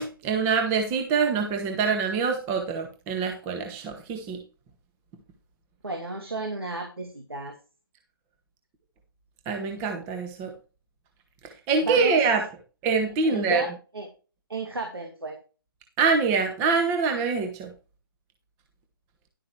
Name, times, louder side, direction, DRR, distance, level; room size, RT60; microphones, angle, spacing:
voice 1, 0.0-4.4 9.4-10.5 11.4-12.4 12.8-13.6 16.0-17.7, right 5 dB, 20° right, 5 dB, 1.7 m, -25 dB
voice 2, 5.8-7.5 11.8-12.2 13.3-13.7 13.9-14.1 14.5-15.4, right 2 dB, 90° right, 2 dB, 2.6 m, -33 dB
11.5 x 9.3 x 3.2 m, 0.34 s
figure-of-eight pair, 145°, 12 cm